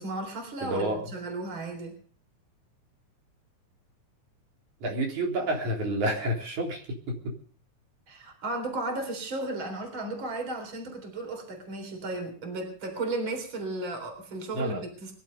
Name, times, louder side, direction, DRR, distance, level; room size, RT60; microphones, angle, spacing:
voice 1, 0.0-2.0 8.1-15.1, right 2 dB, 40° right, 5 dB, 4.4 m, -34 dB
voice 2, 0.6-1.0 4.8-7.4 14.5-14.8, right 1 dB, 70° right, 0 dB, 5.0 m, -29 dB
23.0 x 11.5 x 5.3 m, 0.42 s
omnidirectional pair, 3.6 m